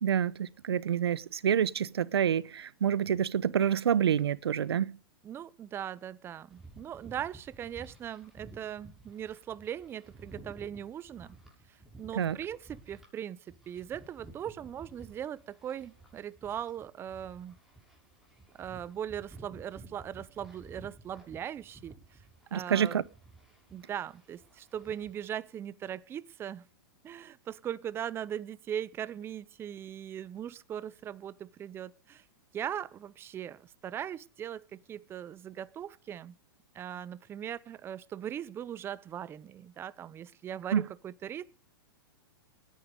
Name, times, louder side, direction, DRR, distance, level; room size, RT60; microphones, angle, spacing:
voice 1, 0.0-5.0 12.1-12.4 22.5-23.0 40.7-40.8, right 9 dB, 90° right, 0.9 m, -27 dB
voice 2, 5.2-11.4 12.0-13.4 13.7-17.6 18.6-22.2 22.5-23.0 23.7-26.7 27.0-32.2 32.5-36.4 36.7-41.4, right 9 dB, 20° right, 0.7 m, -39 dB
sound 1, 6.5-13.1 13.5-25.3, right 2 dB, ahead, 7.1 m, -54 dB
19.5 x 10.0 x 5.1 m
hypercardioid pair, 140°, 13 cm